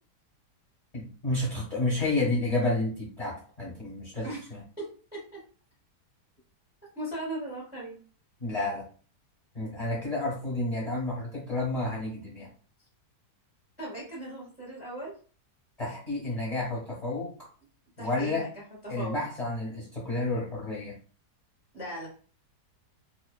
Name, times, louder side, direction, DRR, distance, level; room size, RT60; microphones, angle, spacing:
voice 1, 0.9-4.6 8.4-8.8 9.5-12.5 15.8-17.3 18.0-18.5 18.9-20.9, left 2 dB, 30° left, -6 dB, 0.8 m, -30 dB
voice 2, 4.8-5.4 6.9-8.0 13.8-15.1 18.0-18.5 18.8-19.1 21.7-22.1, right 1 dB, 10° right, -4 dB, 0.6 m, -38 dB
2.7 x 2.0 x 2.3 m, 0.39 s
omnidirectional pair, 1.8 m